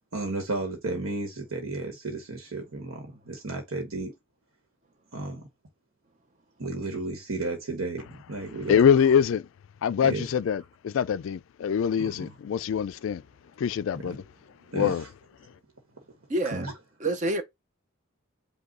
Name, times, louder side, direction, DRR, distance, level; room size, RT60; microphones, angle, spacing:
voice 1, 0.1-4.1 5.1-5.4 6.6-9.1 10.0-10.3 12.0-12.4 13.9-14.2 14.7-15.1 16.5-16.7, right 2 dB, 85° right, 1.2 m, -33 dB
voice 2, 8.7-9.4 9.8-13.2 13.6-14.2 14.7-15.0, left 7 dB, 70° left, 0.3 m, -24 dB
voice 3, 16.3-16.7 17.0-17.4, right 2 dB, 35° right, 0.7 m, -27 dB
5.3 x 2.3 x 3.9 m
head